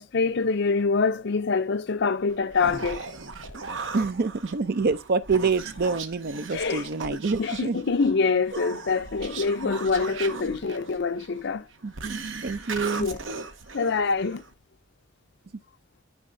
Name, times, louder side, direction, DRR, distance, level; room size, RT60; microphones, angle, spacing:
voice 1, 0.0-3.1 3.4-3.7 6.5-11.6 13.0-13.2 13.7-14.4, left 4 dB, 65° left, 0.6 m, -25 dB
Human voice, 2.3-14.5, right 4 dB, 85° right, 0.9 m, -38 dB
voice 2, 3.9-7.8 9.6-9.7 10.3-10.4 11.8-13.1, right 4 dB, 55° right, 0.6 m, -27 dB
12.0 x 4.6 x 2.6 m
head